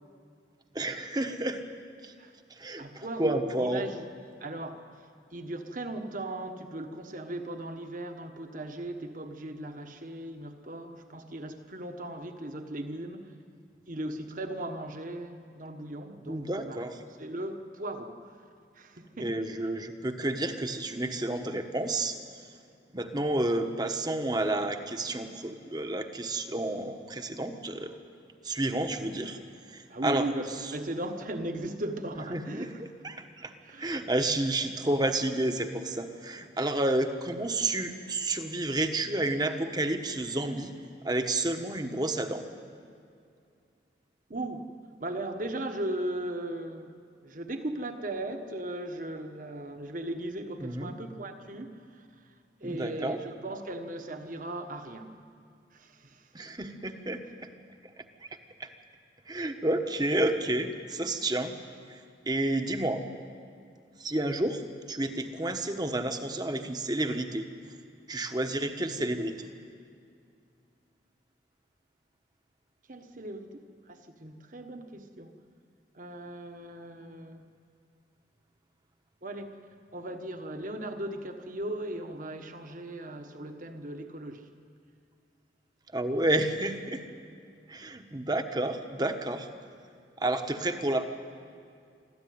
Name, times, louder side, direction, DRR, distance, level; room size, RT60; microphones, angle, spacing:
voice 1, 0.7-1.6 2.0-2.1 2.5-3.8 16.3-17.0 19.2-22.2 22.9-27.9 28.4-29.4 29.7-30.3 32.3-33.5 33.8-40.7 41.0-42.4 50.6-50.9 52.6-53.2 56.3-57.5 58.6-58.7 59.3-61.6 61.9-62.0 62.3-63.0 64.0-64.6 64.9-67.5 68.1-69.5 85.9-87.0 87.7-89.5 90.2-91.0, right 1 dB, 20° right, 6 dB, 1.1 m, -30 dB
voice 2, 2.8-4.0 4.4-4.9 5.3-13.3 13.9-16.8 17.2-18.2 18.7-19.4 29.9-32.8 33.6-33.9 44.3-44.7 45.0-46.9 47.2-52.3 52.6-55.1 55.7-56.3 72.9-75.3 75.9-77.4 79.2-79.6 79.9-84.5, right 1 dB, 45° right, 6 dB, 1.4 m, -37 dB
24.5 x 14.0 x 9.5 m, 2.3 s
head